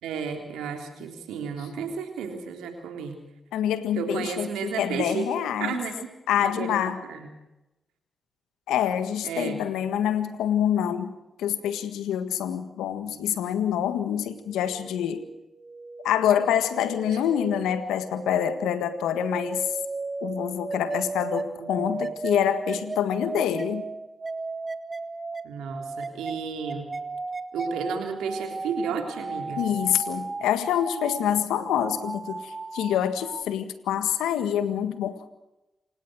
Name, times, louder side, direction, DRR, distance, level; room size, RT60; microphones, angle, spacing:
voice 1, 0.0-3.2 3.9-5.3 5.6-6.1 6.4-6.8 7.1-7.3 9.2-9.6 17.1-17.2 21.6-22.0 25.4-26.9 27.5-29.7, right 6 dB, 90° right, 4 dB, 3.5 m, -32 dB
voice 2, 3.5-5.8 6.3-7.0 8.7-11.1 11.4-15.2 16.0-19.7 20.2-23.8 29.6-35.2, left 10 dB, 90° left, 11 dB, 1.7 m, -26 dB
sound 1, 14.3-33.4, right 3 dB, 40° right, 1.6 m, -35 dB
28.0 x 17.5 x 6.4 m, 0.96 s
supercardioid pair, 40°, 0 cm